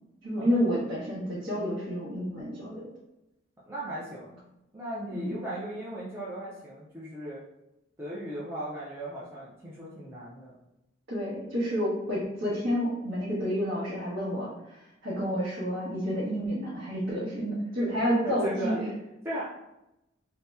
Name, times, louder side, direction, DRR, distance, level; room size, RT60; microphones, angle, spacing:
voice 1, 0.2-2.9 5.1-5.4 11.1-14.8 15.0-18.9, equal, 60° right, -9 dB, 1.0 m, -29 dB
voice 2, 3.6-4.4 4.7-7.4 8.0-10.5 18.2-18.7 19.2-19.4, right 1 dB, 10° right, -9 dB, 0.5 m, -37 dB
2.8 x 2.0 x 3.4 m, 0.89 s
head